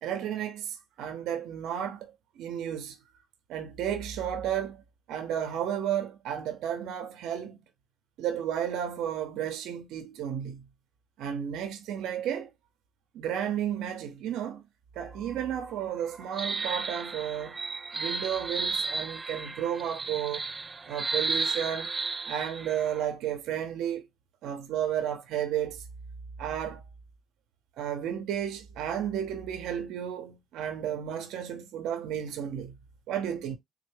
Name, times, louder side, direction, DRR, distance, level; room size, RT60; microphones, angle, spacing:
voice 1, 0.0-3.0 3.5-4.8 5.1-7.6 8.2-10.6 11.2-12.5 13.1-14.6 15.0-17.6 17.9-20.4 20.9-21.9 22.3-24.0 24.4-25.8 26.4-26.8 27.8-32.7 33.1-33.6, right 9 dB, 90° right, 0.5 m, -32 dB
sound 1, 15.1-23.1, right 4 dB, 30° right, 0.4 m, -34 dB
3.6 x 2.1 x 3.1 m
cardioid pair, 90°, 0 cm